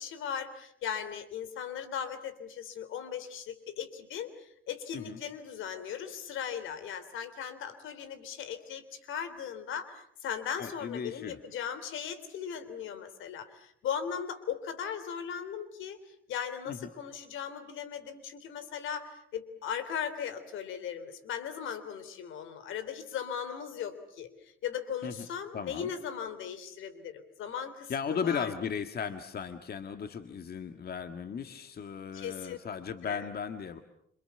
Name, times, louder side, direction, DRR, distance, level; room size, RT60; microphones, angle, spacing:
voice 1, 0.0-28.5 32.1-32.6 33.0-33.3, left 8 dB, 85° left, 13 dB, 3.3 m, -38 dB
voice 2, 10.6-11.4 16.7-16.9 25.0-25.3 25.5-25.9 27.9-33.8, left 6 dB, 50° left, 8 dB, 1.8 m, -36 dB
28.0 x 26.5 x 7.0 m, 0.69 s
cardioid pair, 90°, 20 cm